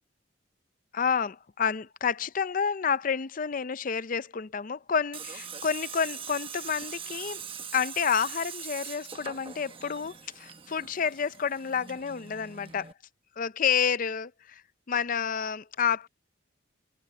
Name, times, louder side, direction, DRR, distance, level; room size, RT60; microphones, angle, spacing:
voice 1, 0.9-7.4 7.7-12.9 13.4-14.6 14.9-16.1, left 6 dB, 45° left, 0.5 m, -29 dB
Tools, 5.1-12.9, right 7 dB, 25° right, 1.2 m, -42 dB
head